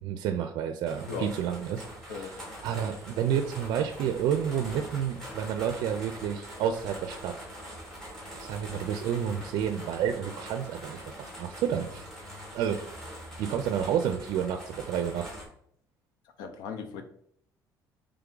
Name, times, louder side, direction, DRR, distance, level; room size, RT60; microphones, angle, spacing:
voice 1, 0.0-2.3 2.6-7.3 8.3-12.0 12.5-12.8 13.4-15.3, right 8 dB, 75° right, 7 dB, 0.4 m, -30 dB
sound 1, 0.9-15.5, equal, 5° left, 1.8 m, -43 dB
voice 2, 16.4-17.0, left 5 dB, 90° left, 7 dB, 0.6 m, -36 dB
3.5 x 3.4 x 3.8 m, 0.66 s
cardioid pair, 160°, 7 cm